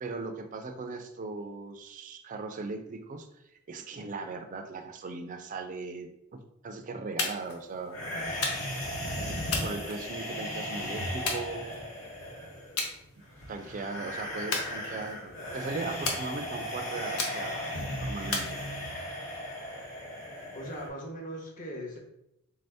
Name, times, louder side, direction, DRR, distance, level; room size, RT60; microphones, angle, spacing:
voice 1, 0.0-3.3 3.7-8.0 9.6-11.8 13.5-17.7 18.0-18.6, right 3 dB, 35° right, 6 dB, 0.3 m, -38 dB
sound 1, 7.2-7.6 8.4-8.9 9.5-10.4 11.3-12.1 12.8-13.0 13.4-13.7 14.5-15.3 16.0-16.7 17.2-17.7 18.3-19.1, left 3 dB, 85° left, 0.7 m, -34 dB
sound 2, 7.9-20.9, equal, 60° left, 1.0 m, -36 dB
voice 2, 20.5-22.0, equal, 40° left, 0 dB, 0.7 m, -39 dB
3.5 x 2.6 x 3.4 m, 0.84 s
head